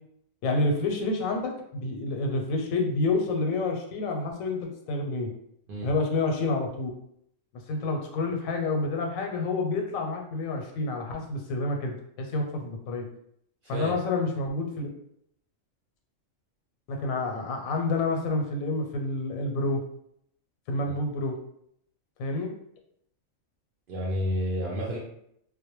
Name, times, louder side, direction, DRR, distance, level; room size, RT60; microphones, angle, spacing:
voice 1, 0.4-5.3 5.8-6.9 7.7-13.1 13.7-14.9 16.9-19.8 20.7-21.4 22.2-22.5, left 2 dB, 90° left, 2 dB, 1.0 m, -28 dB
voice 2, 13.6-13.9 23.9-25.0, equal, 65° right, -4 dB, 0.5 m, -30 dB
2.2 x 2.1 x 2.9 m, 0.72 s
omnidirectional pair, 1.4 m